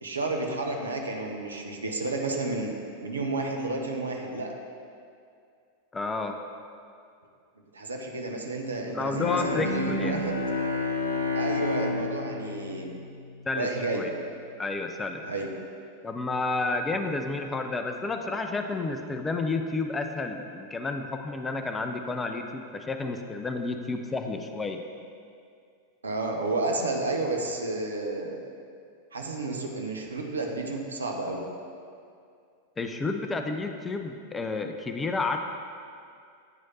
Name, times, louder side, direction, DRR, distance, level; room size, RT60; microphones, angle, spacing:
voice 1, 0.0-2.7 3.0-4.5 7.7-10.4 11.3-13.0 13.6-14.0 15.2-15.5 26.0-28.4 29.1-31.5, right 2 dB, 75° right, 2 dB, 0.7 m, -31 dB
voice 2, 5.9-6.4 8.8-10.2 13.5-13.7 13.9-14.1 14.6-15.2 16.0-24.8 32.8-35.4, left 3 dB, 15° left, 5 dB, 0.4 m, -31 dB
Bowed string instrument, 9.1-14.0, left 3 dB, 80° left, 0.5 m, -31 dB
9.0 x 3.2 x 4.1 m, 2.3 s
figure-of-eight pair, 90°, 0 cm